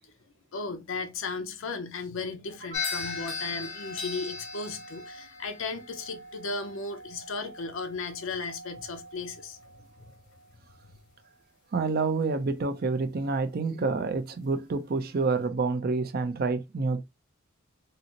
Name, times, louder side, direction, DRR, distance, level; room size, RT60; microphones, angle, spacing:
voice 1, 0.5-9.6, left 4 dB, 65° left, 0.5 m, -35 dB
sound 1, 2.7-11.1, left 4 dB, 90° left, 0.9 m, -40 dB
voice 2, 11.7-17.0, right 4 dB, 45° right, 0.5 m, -28 dB
3.8 x 2.0 x 2.8 m
head